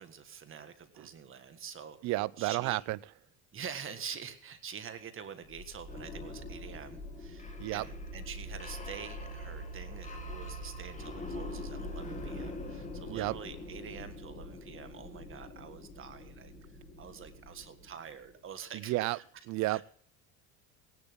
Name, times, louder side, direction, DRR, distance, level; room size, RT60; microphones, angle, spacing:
voice 1, 0.0-2.8 3.5-19.9, right 7 dB, 35° right, 9 dB, 1.7 m, -46 dB
voice 2, 2.0-3.0 7.6-7.8 13.1-13.3 18.9-19.2 19.5-19.9, right 19 dB, 55° right, 23 dB, 0.5 m, -31 dB
sound 1, 5.5-18.3, left 1 dB, 20° left, 2.5 m, -43 dB
18.0 x 11.0 x 3.7 m, 0.62 s
supercardioid pair, 105°, 35 cm